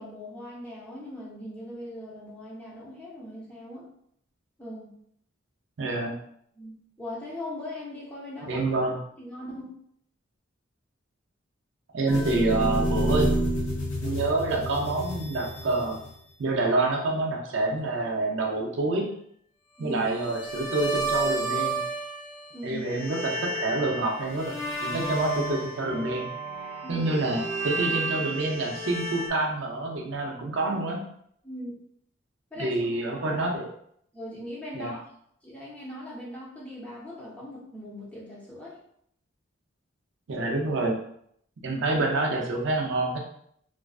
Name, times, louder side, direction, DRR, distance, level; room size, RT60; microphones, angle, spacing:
voice 1, 0.0-3.9 4.6-4.9 6.5-8.9 9.2-9.8 19.8-20.1 22.5-22.8 26.8-27.1 31.4-31.7 32.5-33.5 34.1-35.0 35.4-38.8, left 1 dB, 5° left, -7 dB, 0.6 m, -39 dB
voice 2, 5.8-6.1 8.5-9.0 11.9-13.3 14.0-16.0 16.4-19.1 19.8-21.8 22.6-24.5 24.8-26.3 26.9-31.0 32.6-33.7 34.7-34.9 40.3-41.0 41.6-43.2, right 2 dB, 60° right, 0 dB, 0.4 m, -27 dB
sound 1, 12.1-16.3 20.1-22.5 22.8-29.3, right 1 dB, 75° left, 0.6 m, -30 dB
2.4 x 2.3 x 2.3 m, 0.69 s
head